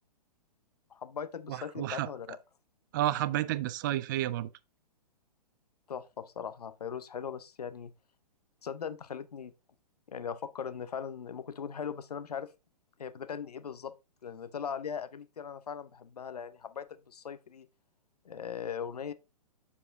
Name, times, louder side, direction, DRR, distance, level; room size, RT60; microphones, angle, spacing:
voice 1, 0.9-2.4 5.9-7.9 8.6-9.5 10.1-12.5 13.0-13.9 14.2-17.7 18.2-19.1, left 7 dB, 70° left, 0.7 m, -39 dB
voice 2, 1.5-2.1 2.9-4.5, right 14 dB, 30° right, 0.4 m, -31 dB
6.9 x 4.9 x 3.4 m
figure-of-eight pair, 115°, 21 cm